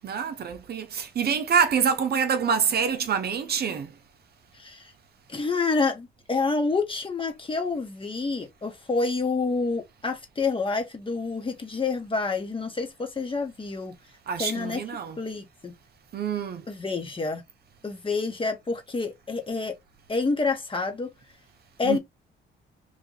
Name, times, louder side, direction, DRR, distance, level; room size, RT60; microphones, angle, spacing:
voice 1, 0.0-3.9 14.3-15.2 16.1-16.6 21.8-22.0, right 7 dB, 55° right, 0.7 m, -26 dB
voice 2, 5.3-13.9 14.4-14.8 15.2-15.7 16.7-17.4 17.8-19.8 20.1-21.1 21.8-22.0, left 4 dB, 25° left, 1.2 m, -28 dB
3.2 x 2.6 x 3.9 m
cardioid pair, 90°, 20 cm